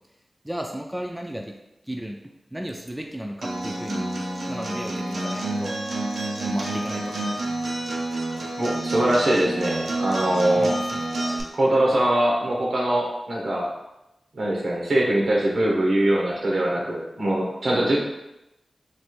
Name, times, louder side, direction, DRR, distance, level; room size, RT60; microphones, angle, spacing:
voice 1, 0.4-1.5 1.9-2.2 2.5-4.1 4.5-5.7 6.4-7.3 10.6-11.0, equal, 10° right, 2 dB, 0.3 m, -34 dB
Acoustic guitar, 3.4-11.4, right 2 dB, 90° right, 0.7 m, -29 dB
voice 2, 8.5-10.8 11.5-13.7 14.3-18.0, right 1 dB, 70° right, -2 dB, 1.0 m, -22 dB
3.2 x 2.5 x 4.4 m, 0.91 s
wide cardioid pair, 95°, 0 cm